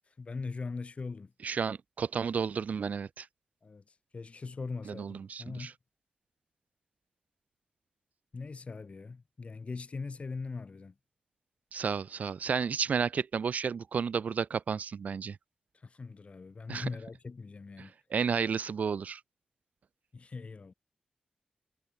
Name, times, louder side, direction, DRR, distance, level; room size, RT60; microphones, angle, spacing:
voice 1, 0.2-1.3 3.6-3.8 4.1-5.7 8.3-10.9 15.8-17.9 20.1-20.7, left 4 dB, 50° left, 3.1 m, -40 dB
voice 2, 1.4-3.3 4.9-5.7 11.7-15.4 16.7-16.9 17.8-19.2, right 6 dB, 70° right, 0.5 m, -32 dB
cardioid pair, 60°, 3 cm